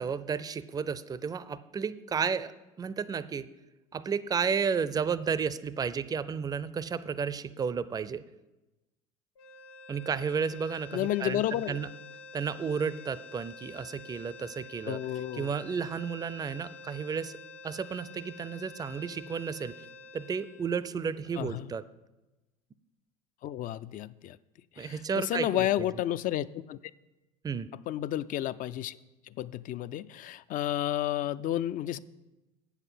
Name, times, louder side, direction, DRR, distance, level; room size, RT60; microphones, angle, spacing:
voice 1, 0.0-2.5 2.8-3.5 3.9-8.2 9.9-11.9 12.3-17.3 17.6-19.7 20.1-21.8 24.8-25.9 27.4-27.7, right 6 dB, 20° right, 16 dB, 0.4 m, -32 dB
sound 1, 9.4-21.6, left 3 dB, 75° left, 0.9 m, -49 dB
voice 2, 10.9-11.8 14.9-15.5 21.4-21.7 23.4-24.4 24.8-26.8 27.9-29.0 29.4-32.0, left 12 dB, 45° left, 16 dB, 0.4 m, -31 dB
7.9 x 7.2 x 5.6 m, 1.0 s
hypercardioid pair, 75°, 19 cm